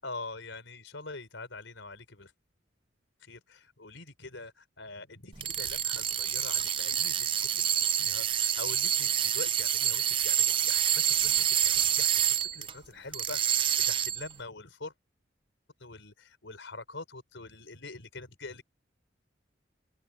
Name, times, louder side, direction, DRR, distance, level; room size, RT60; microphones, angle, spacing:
voice 1, 0.0-2.3 3.2-14.9 15.8-18.6, left 3 dB, 85° left, 4.2 m, -44 dB
sound 1, 5.3-12.7 13.1-14.3, right 9 dB, 25° right, 0.5 m, -27 dB
open air
head